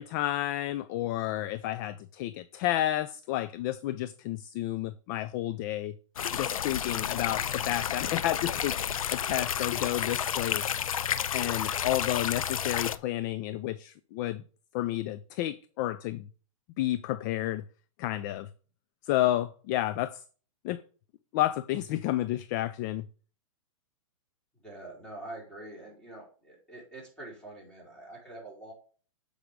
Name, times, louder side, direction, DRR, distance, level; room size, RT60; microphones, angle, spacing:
voice 1, 0.0-5.9 6.3-8.8 9.1-10.6 11.3-14.4 14.7-16.3 16.8-17.6 18.0-18.5 19.0-20.2 20.6-20.8 21.3-23.1, left 14 dB, 35° left, 0.4 m, -31 dB
sound 1, 6.2-13.0, left 9 dB, 85° left, 0.6 m, -31 dB
voice 2, 24.6-28.7, right 2 dB, 5° left, 4.4 m, -45 dB
7.9 x 5.1 x 4.8 m
hypercardioid pair, 140°, 17 cm